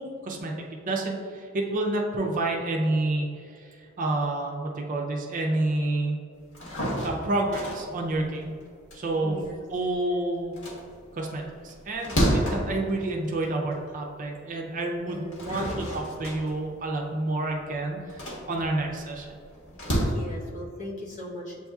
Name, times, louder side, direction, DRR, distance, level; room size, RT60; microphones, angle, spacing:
voice 1, 0.0-6.2 7.0-8.5 8.9-9.4 9.7-10.5 11.1-19.3, right 2 dB, 40° right, 0 dB, 0.5 m, -29 dB
sound 1, 6.4-10.0 10.4-13.9 14.4-14.5 15.1-20.0, equal, 80° left, 1.1 m, -31 dB
voice 2, 9.2-9.6 15.0-15.9 20.0-21.7, left 1 dB, 35° left, -5 dB, 0.9 m, -39 dB
7.8 x 2.8 x 2.3 m, 2.2 s
head